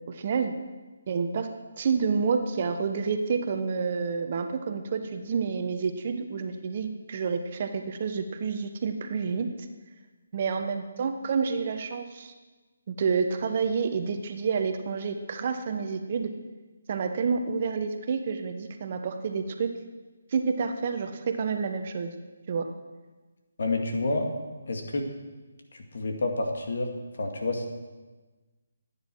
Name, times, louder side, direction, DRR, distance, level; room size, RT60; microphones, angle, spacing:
voice 1, 0.1-0.5 1.1-1.5 1.8-9.5 10.3-12.3 12.9-16.3 16.9-19.7 20.3-22.1 22.5-22.7, right 5 dB, 45° right, 6 dB, 1.1 m, -29 dB
voice 2, 23.6-24.3 24.7-25.1 25.7-26.9 27.2-27.7, left 2 dB, 65° left, 3 dB, 2.2 m, -29 dB
15.5 x 9.6 x 4.7 m, 1.3 s
figure-of-eight pair, 155°, 0 cm